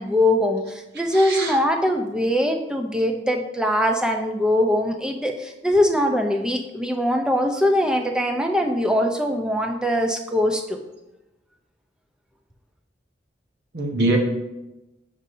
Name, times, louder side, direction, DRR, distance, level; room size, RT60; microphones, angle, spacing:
voice 1, 0.0-10.8, left 1 dB, 5° right, 3 dB, 0.5 m, -22 dB
voice 2, 1.1-1.6 13.7-14.2, right 2 dB, 55° right, 1 dB, 1.0 m, -23 dB
7.8 x 5.4 x 2.7 m, 0.97 s
head